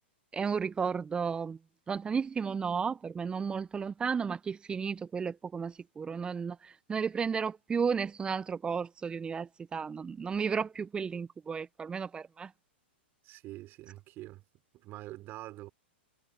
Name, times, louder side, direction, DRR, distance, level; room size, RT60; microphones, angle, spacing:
voice 1, 0.3-1.6 1.9-12.5, right 6 dB, 15° right, 0.6 m, -33 dB
voice 2, 13.2-14.4 14.7-15.7, right 17 dB, 35° right, 5.1 m, -45 dB
hypercardioid pair, 110°, 6 cm